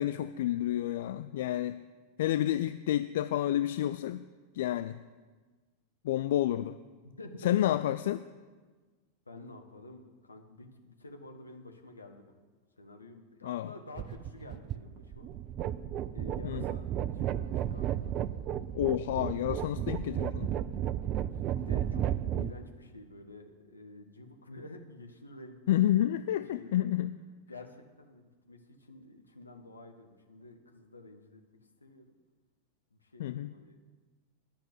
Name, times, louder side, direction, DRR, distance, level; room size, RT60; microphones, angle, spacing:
voice 1, 0.0-1.8 2.2-4.2 4.5-5.0 6.0-6.8 7.4-8.2 13.4-13.7 16.4-16.6 18.7-20.5 25.7-27.1 33.2-33.5, left 12 dB, 55° left, 11 dB, 0.3 m, -29 dB
voice 2, 7.0-7.4 9.3-12.4 12.8-15.3 16.1-18.1 21.2-26.0 26.5-26.9 27.5-31.4 31.8-32.2 32.9-33.8, left 2 dB, 80° left, 4 dB, 1.2 m, -50 dB
sound 1, 14.0-22.5, right 10 dB, 35° right, 0.4 m, -33 dB
11.0 x 6.1 x 8.2 m, 1.4 s
figure-of-eight pair, 90°, 0 cm